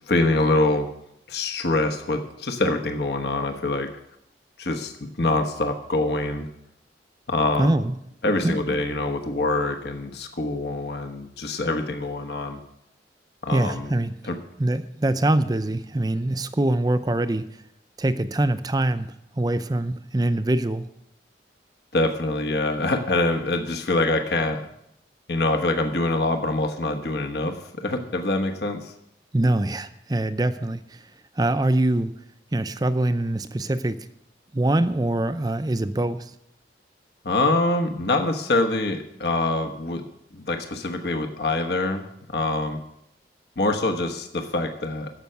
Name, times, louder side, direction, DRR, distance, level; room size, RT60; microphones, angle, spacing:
voice 1, 0.1-0.9 1.3-3.9 4.6-6.5 7.3-7.7 8.2-12.6 13.4-13.9 14.2-14.4 21.9-24.6 25.3-28.9 37.2-40.0 40.3-42.0 42.3-42.8 43.6-45.1, left 2 dB, 65° left, 5 dB, 1.2 m, -25 dB
voice 2, 7.6-7.9 8.4-8.6 13.5-14.1 14.6-17.5 18.0-19.1 19.4-20.9 29.3-30.8 31.4-32.1 32.5-34.0 34.5-36.2, right 1 dB, 20° right, 11 dB, 0.5 m, -23 dB
14.0 x 5.7 x 7.9 m, 0.79 s
head